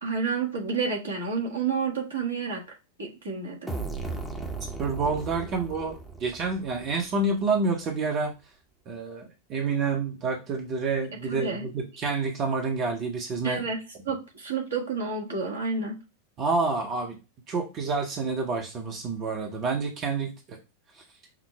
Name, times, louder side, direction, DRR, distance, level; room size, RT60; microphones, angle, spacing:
voice 1, 0.0-2.6 3.0-3.7 11.3-11.6 13.4-13.8 14.0-16.0, right 5 dB, 70° right, 0 dB, 1.3 m, -30 dB
sound 1, 3.7-7.3, right 3 dB, ahead, 0.8 m, -36 dB
voice 2, 4.8-8.3 8.9-13.7 16.4-17.2 17.5-20.6 20.9-21.0, right 4 dB, 35° right, 3 dB, 0.9 m, -28 dB
5.9 x 2.0 x 4.4 m, 0.29 s
figure-of-eight pair, 90°, 0 cm